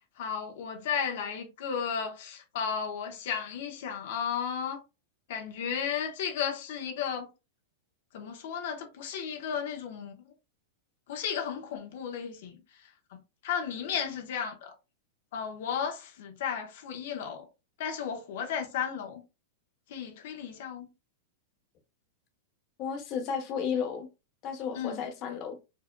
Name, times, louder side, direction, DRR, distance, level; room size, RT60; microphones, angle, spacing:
voice 1, 0.2-4.8 5.3-7.3 8.1-10.2 11.1-12.6 13.4-14.7 15.3-17.5 17.8-19.2 19.9-20.9 24.7-25.0, left 7 dB, 65° left, 0.9 m, -34 dB
voice 2, 22.8-24.1 24.4-25.6, left 7 dB, 35° left, 0.9 m, -33 dB
4.7 x 2.7 x 2.2 m
supercardioid pair, 155°, 0 cm